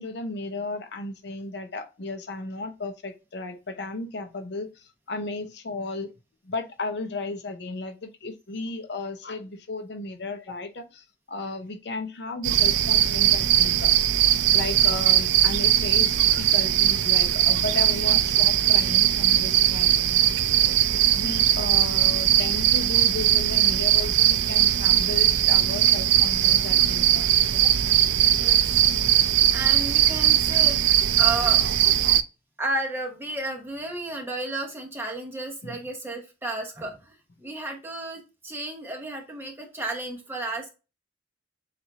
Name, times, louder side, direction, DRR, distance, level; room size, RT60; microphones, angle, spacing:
voice 1, 0.0-6.1 6.4-13.9 14.5-19.9 20.9-27.3 35.6-35.8, left 2 dB, 65° left, 0.7 m, -34 dB
sound 1, 12.4-32.2, right 11 dB, 80° right, 0.4 m, -20 dB
voice 2, 28.3-30.8 31.2-31.7 32.6-40.7, right 2 dB, 10° right, 1.0 m, -33 dB
7.1 x 2.6 x 2.8 m
head